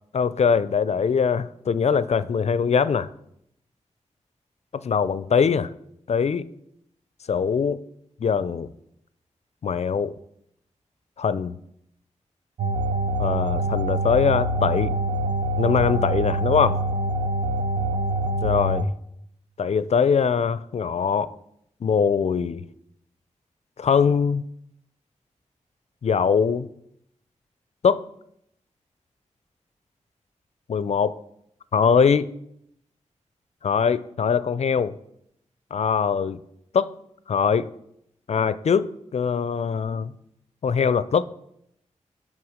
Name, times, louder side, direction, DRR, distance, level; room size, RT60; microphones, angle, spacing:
voice 1, 0.1-3.1 4.7-5.7 6.1-6.5 7.3-7.8 8.2-8.7 9.6-10.1 11.2-11.6 13.2-14.9 15.6-16.8 18.4-18.9 19.6-21.3 21.8-22.6 23.8-24.5 26.0-26.7 27.8-28.0 30.7-31.1 31.7-32.3 33.6-35.0 35.7-36.4 36.7-36.9 37.3-37.7 38.3-38.9 39.1-40.1 40.6-41.2, left 6 dB, 60° left, 0.4 m, -22 dB
sound 1, 12.6-18.8, right 1 dB, 70° right, 0.7 m, -25 dB
7.9 x 5.5 x 4.9 m
cardioid pair, 60°, 13 cm